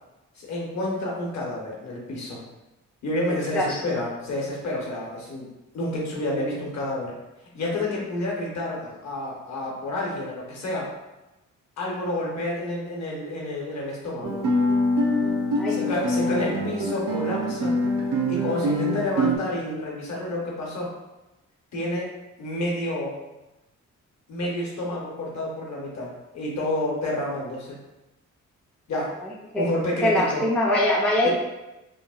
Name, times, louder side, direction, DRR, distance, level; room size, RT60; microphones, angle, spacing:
voice 1, 0.4-2.4 3.0-7.1 7.5-10.9 11.8-14.4 15.7-17.7 18.3-20.9 21.7-22.1 22.4-23.2 24.3-27.8 28.9-29.2 29.6-30.4 31.2-31.3, left 1 dB, 60° left, -3 dB, 0.9 m, -29 dB
Guitar, 14.2-19.4, equal, 90° right, 0.5 m, -24 dB
voice 2, 29.2-29.7 30.0-31.3, left 1 dB, 5° left, -3 dB, 0.3 m, -23 dB
3.0 x 2.1 x 2.3 m, 1.0 s
cardioid pair, 100°, 31 cm